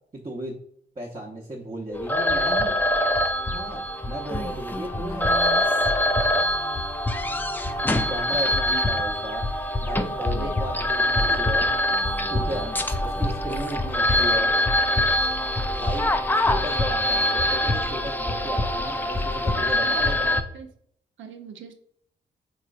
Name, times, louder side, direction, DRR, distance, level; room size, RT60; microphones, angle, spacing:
voice 1, 0.1-0.6 1.0-2.8 3.5-5.3 8.1-9.5 9.8-11.7 12.3-12.7 13.0-14.6 15.8-16.1 16.4-20.4, right 1 dB, 25° right, -2 dB, 0.8 m, -34 dB
sound 1, 1.9-20.4, left 1 dB, 10° left, 0.4 m, -24 dB
voice 2, 19.8-20.7 21.2-21.7, right 6 dB, 65° right, 5 dB, 0.6 m, -41 dB
3.7 x 3.1 x 2.4 m, 0.65 s
hypercardioid pair, 45°, 21 cm